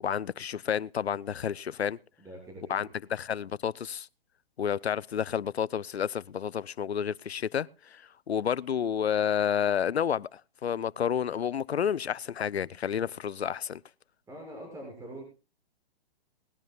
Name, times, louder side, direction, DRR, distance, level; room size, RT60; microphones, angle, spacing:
voice 1, 0.0-2.0 2.7-4.1 4.6-8.0 8.3-13.8, left 8 dB, 90° left, 0.7 m, -30 dB
voice 2, 2.2-2.9 14.3-15.2, right 1 dB, 10° right, 6.8 m, -43 dB
20.5 x 16.5 x 2.4 m
hypercardioid pair, 135°, 31 cm